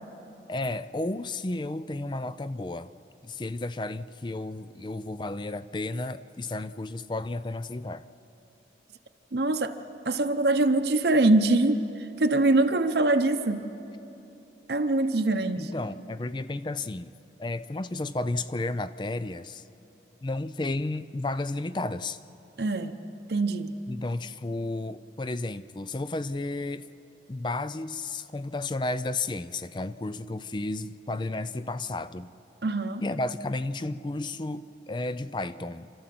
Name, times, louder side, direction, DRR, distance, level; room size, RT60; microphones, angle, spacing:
voice 1, 0.5-2.9 3.2-8.0 15.6-17.1 17.4-19.6 20.2-22.2 23.9-26.9 27.3-32.3 33.0-35.9, left 2 dB, 25° left, 14 dB, 0.4 m, -32 dB
voice 2, 9.3-9.8 10.1-11.9 12.2-13.7 14.7-15.7 22.6-23.0 23.3-23.7 32.6-33.0, right 2 dB, 70° right, 7 dB, 0.8 m, -23 dB
28.5 x 13.0 x 7.7 m, 2.9 s
head